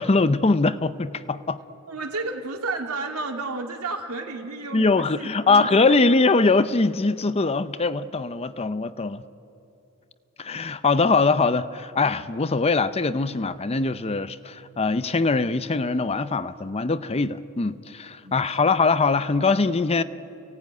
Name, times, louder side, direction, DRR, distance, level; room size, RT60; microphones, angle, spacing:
voice 1, 0.0-1.6 4.7-9.2 10.4-20.0, left 3 dB, 30° left, 0.6 m, -22 dB
voice 2, 1.9-6.0 18.2-18.7, right 3 dB, 80° right, 2.3 m, -32 dB
29.5 x 17.5 x 9.3 m
head